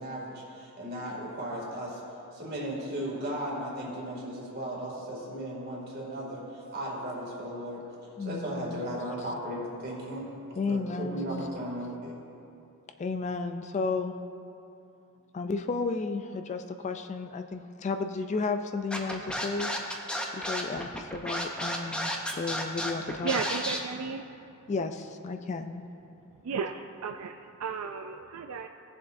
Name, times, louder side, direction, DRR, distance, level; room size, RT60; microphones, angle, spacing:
voice 1, 0.0-2.0 2.3-7.8 8.2-10.3 10.7-12.2, right 1 dB, 45° right, -4 dB, 2.3 m, -36 dB
voice 2, 8.2-8.8 10.6-11.4 13.0-14.2 15.3-19.7 20.3-23.3 24.7-25.8, left 4 dB, 30° left, 8 dB, 0.3 m, -33 dB
Scratching (performance technique), 18.9-23.8, equal, 5° left, 0.7 m, -32 dB
voice 3, 21.9-22.4 23.2-24.3 26.4-28.7, right 5 dB, 70° right, 5 dB, 0.4 m, -35 dB
17.5 x 7.2 x 2.6 m, 2.8 s
head